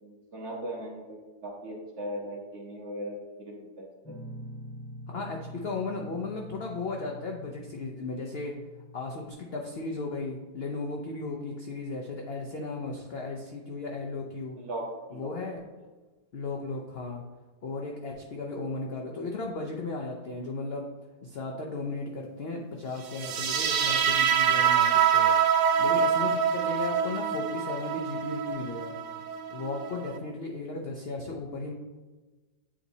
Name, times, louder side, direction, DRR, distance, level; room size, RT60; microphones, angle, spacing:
voice 1, 0.0-4.1 14.6-15.3, right 1 dB, 45° right, -2 dB, 1.3 m, -39 dB
Guitar, 4.0-9.3, equal, 10° left, 1.1 m, -45 dB
voice 2, 5.1-8.5 8.9-14.6 15.1-15.6 16.3-17.2 17.6-20.9 21.2-25.3 25.8-29.0 29.5-31.7, left 3 dB, 75° left, 0 dB, 0.5 m, -35 dB
sound 1, 23.1-30.2, right 7 dB, 70° right, 0.9 m, -25 dB
8.8 x 4.0 x 2.7 m, 1.2 s
omnidirectional pair, 1.8 m